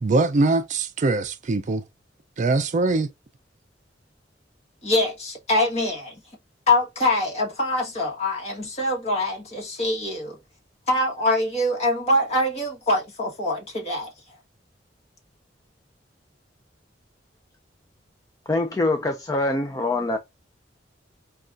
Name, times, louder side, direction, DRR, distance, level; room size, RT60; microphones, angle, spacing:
voice 1, 0.0-1.8 2.4-3.1, right 3 dB, 40° right, 0.4 m, -22 dB
voice 2, 4.8-6.1 6.7-10.4 10.9-14.1, left 1 dB, 35° left, 1.4 m, -24 dB
voice 3, 18.5-20.2, left 2 dB, 20° left, 0.4 m, -24 dB
5.3 x 2.3 x 2.4 m
head